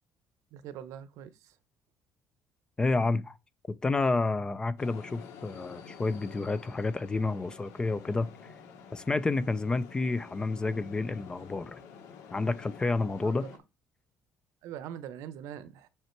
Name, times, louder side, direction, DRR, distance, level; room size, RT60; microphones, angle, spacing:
voice 1, 0.5-1.3 13.2-13.3 14.6-15.9, right 9 dB, 80° right, 0.9 m, -42 dB
voice 2, 2.8-3.4 3.8-8.3 8.9-11.8 12.3-13.5, left 3 dB, 15° left, 0.4 m, -29 dB
sound 1, 4.8-13.6, left 6 dB, 80° left, 2.2 m, -49 dB
7.0 x 5.5 x 4.5 m
cardioid pair, 175°, 5 cm